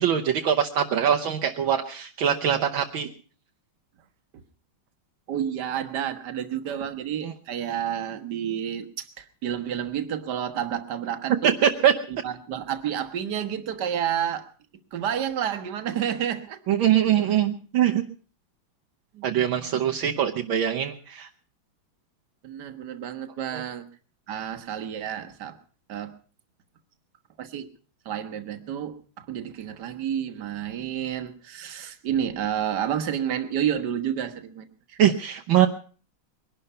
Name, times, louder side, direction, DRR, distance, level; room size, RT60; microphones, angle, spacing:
voice 1, 0.0-3.1 7.2-7.3 11.4-11.9 16.7-18.0 19.2-21.3 23.5-23.6 35.0-35.7, right 10 dB, 70° right, 3 dB, 1.7 m, -22 dB
voice 2, 5.3-11.6 12.1-14.5 14.9-16.6 17.1-17.4 19.1-19.3 19.5-20.0 22.4-23.9 24.3-25.6 25.9-26.1 27.4-27.7 28.1-35.0, right 9 dB, 55° right, 8 dB, 1.8 m, -30 dB
22.0 x 11.5 x 5.5 m, 0.42 s
omnidirectional pair, 2.4 m